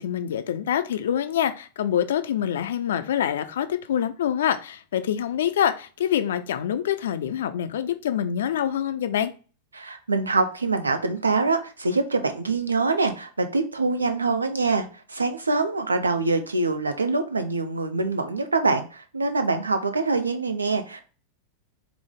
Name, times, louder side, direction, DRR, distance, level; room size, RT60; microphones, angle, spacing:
voice 1, 0.0-9.3, left 10 dB, 60° left, 0.4 m, -25 dB
voice 2, 9.7-21.0, right 3 dB, 80° right, 0.5 m, -24 dB
4.6 x 2.0 x 3.5 m
figure-of-eight pair, 90°, 0 cm